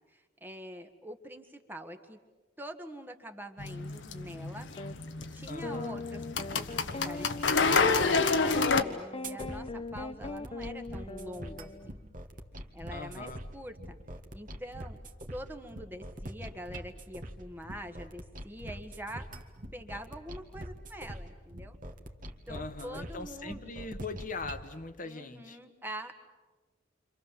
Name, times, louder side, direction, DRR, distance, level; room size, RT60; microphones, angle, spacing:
voice 1, 0.1-2.2 2.6-4.7 5.3-6.2 6.5-12.0 12.7-14.0 14.3-15.0 15.3-19.3 19.7-21.8 22.5-23.7 25.0-26.2, equal, 10° right, 6 dB, 1.5 m, -44 dB
sound 1, 3.6-8.8, left 4 dB, 85° left, 1.4 m, -29 dB
sound 2, 4.8-4.9 5.6-11.9, left 2 dB, 30° left, 0.8 m, -39 dB
voice 2, 5.5-6.0 12.9-13.4 22.5-25.6, left 3 dB, 45° left, 8 dB, 1.3 m, -41 dB
sound 3, 9.2-24.7, right 1 dB, 45° right, 1.9 m, -44 dB
29.0 x 26.5 x 7.5 m, 1.3 s
head